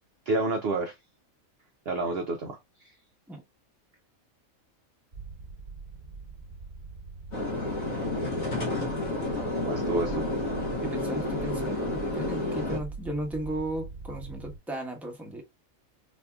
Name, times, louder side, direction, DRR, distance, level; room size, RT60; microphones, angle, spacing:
voice 1, 0.3-1.0 1.9-3.0 9.6-10.3, right 2 dB, 60° right, 0.7 m, -29 dB
sound 1, 5.1-14.6, right 4 dB, 35° right, 1.1 m, -42 dB
sound 2, 7.3-12.8, left 2 dB, 75° left, 1.9 m, -30 dB
voice 2, 10.8-15.4, right 1 dB, ahead, 0.9 m, -35 dB
4.1 x 2.7 x 2.3 m
omnidirectional pair, 1.5 m